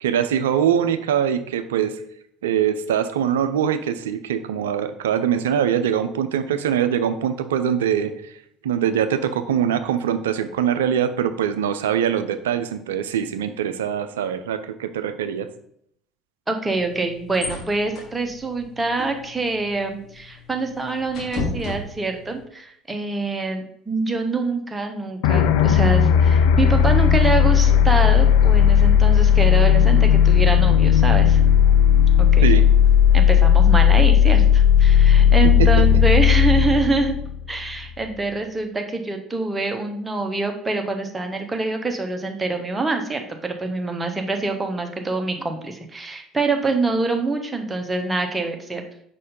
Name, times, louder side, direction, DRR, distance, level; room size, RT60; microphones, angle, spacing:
voice 1, 0.0-2.0 2.4-8.3 8.6-15.5 32.4-32.6 35.6-35.7, right 9 dB, 75° right, 10 dB, 0.4 m, -23 dB
voice 2, 16.5-31.4 32.2-32.5 33.1-37.2 37.5-48.8, right 3 dB, 15° right, 4 dB, 1.1 m, -25 dB
sound 1, 16.7-22.4, left 3 dB, 50° left, 2.6 m, -35 dB
sound 2, 25.2-38.0, left 8 dB, 70° left, 0.4 m, -15 dB
5.3 x 4.2 x 5.2 m, 0.69 s
figure-of-eight pair, 60°, 0 cm